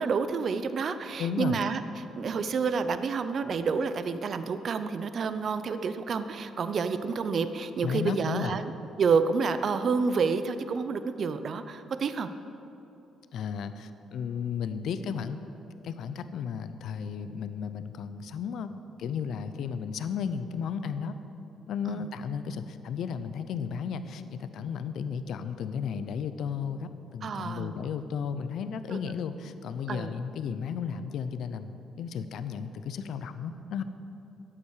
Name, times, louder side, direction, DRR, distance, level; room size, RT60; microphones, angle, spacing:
voice 1, 0.0-8.7 9.0-12.3 21.9-22.1 27.2-27.7 28.9-29.0 29.9-30.1, right 5 dB, 55° right, 11 dB, 0.6 m, -29 dB
voice 2, 1.2-1.6 7.8-8.6 13.3-15.4 15.8-18.7 19.0-21.1 21.7-33.8, left 7 dB, 75° left, 11 dB, 0.6 m, -34 dB
12.0 x 8.6 x 6.5 m, 2.9 s
cardioid pair, 90°, 0 cm